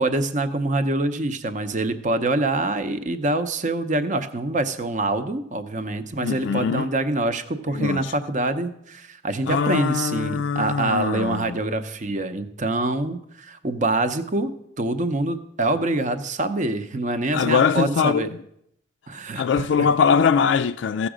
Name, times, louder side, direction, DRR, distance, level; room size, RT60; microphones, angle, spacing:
voice 1, 0.0-14.5 14.8-18.3 19.1-19.9, right 2 dB, 40° right, 0.7 m, -25 dB
voice 2, 6.2-6.9 7.7-8.1 9.5-11.6 17.3-18.3 19.4-21.1, left 6 dB, 70° left, 0.3 m, -22 dB
14.5 x 7.1 x 4.9 m
head